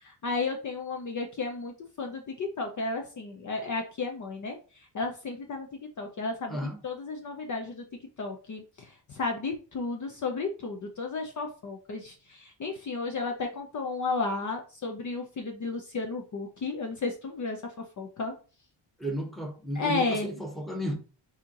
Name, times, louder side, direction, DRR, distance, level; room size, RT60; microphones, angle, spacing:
voice 1, 0.0-4.6 4.9-5.7 6.0-7.9 8.2-17.6 18.0-18.3 19.7-20.3, left 3 dB, 40° left, 0.7 m, -33 dB
voice 2, 6.5-6.8 19.0-20.9, right 1 dB, ahead, 0.9 m, -33 dB
4.3 x 2.9 x 3.7 m
cardioid pair, 150°, 46 cm